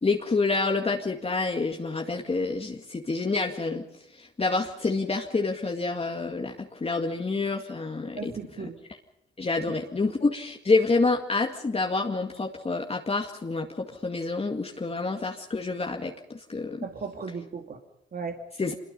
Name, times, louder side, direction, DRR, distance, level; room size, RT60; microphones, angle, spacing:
voice 1, 0.0-3.8 4.1-8.3 9.4-16.9 18.6-18.7, left 3 dB, 30° left, 2 dB, 2.0 m, -28 dB
voice 2, 8.2-8.8 9.7-9.8 16.8-17.8 18.1-18.4, right 5 dB, 50° right, 5 dB, 2.3 m, -36 dB
25.5 x 22.0 x 5.5 m, 0.81 s
cardioid pair, 75°, 20 cm